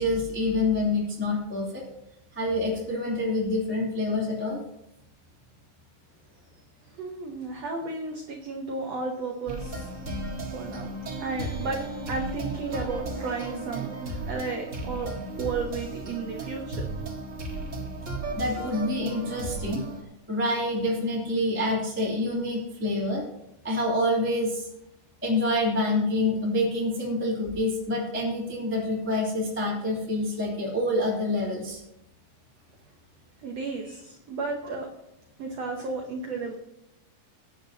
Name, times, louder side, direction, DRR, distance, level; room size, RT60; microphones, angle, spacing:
voice 1, 0.0-1.8 2.3-4.6 18.3-19.8 20.3-23.2 23.6-24.7 25.2-31.8, left 1 dB, 5° right, -6 dB, 2.5 m, -27 dB
voice 2, 6.9-10.0 10.5-10.9 11.2-13.9 14.3-16.9 33.4-34.9 35.4-36.6, right 4 dB, 65° right, 1 dB, 1.7 m, -33 dB
sound 1, 9.5-20.0, right 2 dB, 35° right, 1.2 m, -35 dB
17.5 x 10.0 x 2.9 m, 0.84 s
omnidirectional pair, 4.2 m